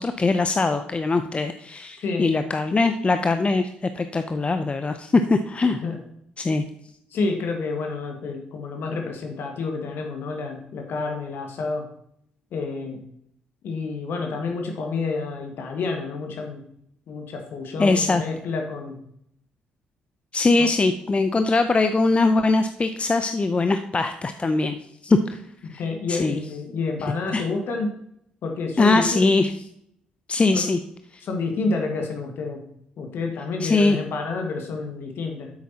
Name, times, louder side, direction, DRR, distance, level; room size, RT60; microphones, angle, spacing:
voice 1, 0.0-5.8 6.4-6.6 17.8-18.2 20.3-24.8 25.0-25.4 25.7-25.8 26.1-26.4 27.3-27.4 28.8-29.5 30.3-30.8 33.6-34.0, left 3 dB, 30° left, 9 dB, 0.6 m, -21 dB
voice 2, 7.1-11.8 12.5-13.1 13.6-16.6 17.1-19.0 20.6-20.7 25.6-28.0 28.4-29.3 30.5-30.7 31.2-32.6 33.0-35.5, left 3 dB, 60° left, 3 dB, 1.8 m, -29 dB
9.6 x 8.3 x 2.9 m, 0.71 s
hypercardioid pair, 45°, 4 cm